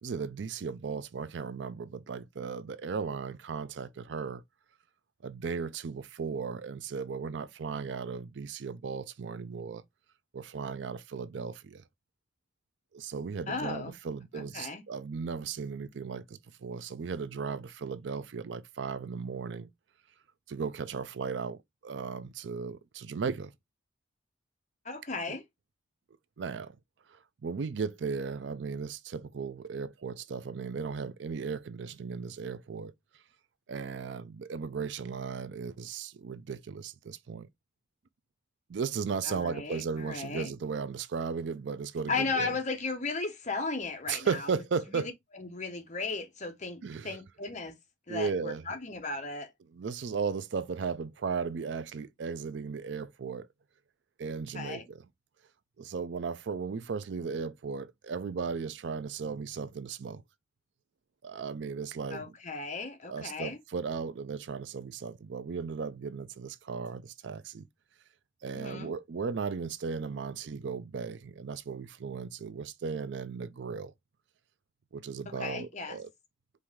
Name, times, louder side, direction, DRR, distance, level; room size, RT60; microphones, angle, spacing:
voice 1, 0.0-4.4 5.2-9.8 10.3-11.8 12.9-19.7 20.5-23.5 25.3-25.4 26.4-26.8 27.1-32.9 33.7-37.5 38.7-42.6 44.1-45.1 46.8-47.2 48.1-48.7 49.7-53.5 54.2-55.0 55.8-60.2 61.2-62.3 63.1-67.7 68.4-73.9 74.9-76.1, right 5 dB, 70° right, 0.4 m, -36 dB
voice 2, 13.5-13.9 14.3-14.8 24.8-25.4 39.2-40.5 42.1-44.5 44.9-47.7 48.1-49.5 54.5-54.9 62.1-63.6 68.5-68.9 75.3-76.0, left 4 dB, 40° left, 1.0 m, -36 dB
4.5 x 2.7 x 3.6 m
head